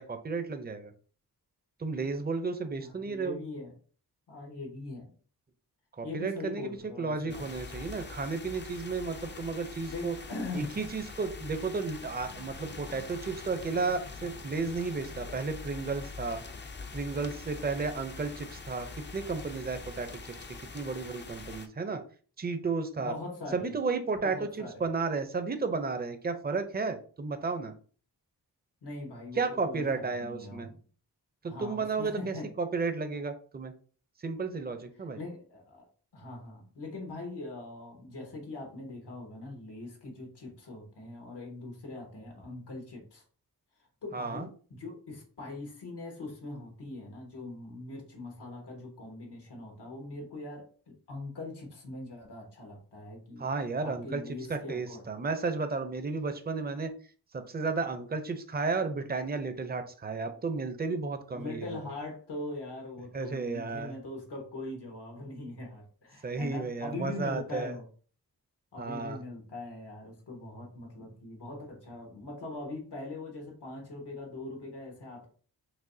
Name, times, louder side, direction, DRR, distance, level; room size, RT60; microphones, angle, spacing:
voice 1, 0.1-0.9 1.8-3.4 6.0-10.2 10.5-16.4 16.9-20.1 20.7-22.0 22.4-23.1 23.5-27.7 29.4-30.7 31.4-33.7 34.2-35.2 44.1-44.5 53.4-54.2 54.5-56.9 57.3-61.7 63.1-63.9 66.2-67.8 68.8-69.2, right 4 dB, 25° right, 8 dB, 0.6 m, -33 dB
voice 2, 2.8-3.7 4.3-5.1 6.0-7.5 9.9-10.7 23.0-23.7 24.2-24.9 28.8-30.8 31.4-32.5 35.1-35.9 36.1-43.2 44.0-53.5 53.8-55.1 61.3-67.9 68.7-75.3, left 2 dB, 80° left, 2 dB, 1.5 m, -41 dB
sound 1, 7.3-21.7, left 4 dB, 30° left, 0.5 m, -44 dB
6.1 x 2.3 x 2.7 m, 0.41 s
wide cardioid pair, 65°, 40 cm